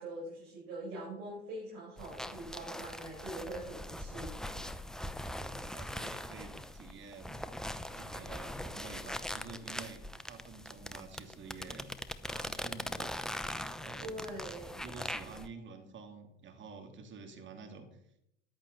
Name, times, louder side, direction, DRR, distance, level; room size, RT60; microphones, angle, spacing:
voice 1, 0.0-4.7 14.0-14.8, right 1 dB, 60° right, -7 dB, 6.3 m, -43 dB
sound 1, 2.0-15.5, left 1 dB, ahead, 0.7 m, -41 dB
voice 2, 5.5-7.4 7.8-11.9 12.2-13.2 13.7-14.5 14.8-18.1, right 4 dB, 35° right, 5 dB, 2.5 m, -49 dB
14.0 x 11.0 x 4.1 m, 0.78 s
figure-of-eight pair, 70°, 33 cm